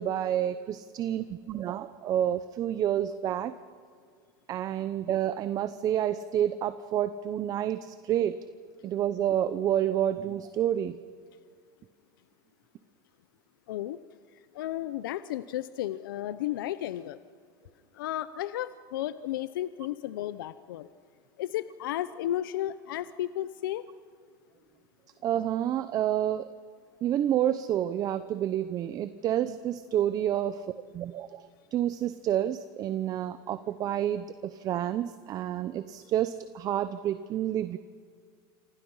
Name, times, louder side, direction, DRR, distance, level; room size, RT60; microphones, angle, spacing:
voice 1, 0.0-3.5 4.5-8.4 8.8-11.0 25.2-26.5 27.0-30.7 30.9-37.8, right 11 dB, 35° right, 13 dB, 0.9 m, -29 dB
voice 2, 13.7-14.0 14.5-17.2 18.0-20.9 21.4-23.8, left 13 dB, 90° left, 14 dB, 0.8 m, -33 dB
29.5 x 25.5 x 5.7 m, 2.1 s
supercardioid pair, 140°, 11 cm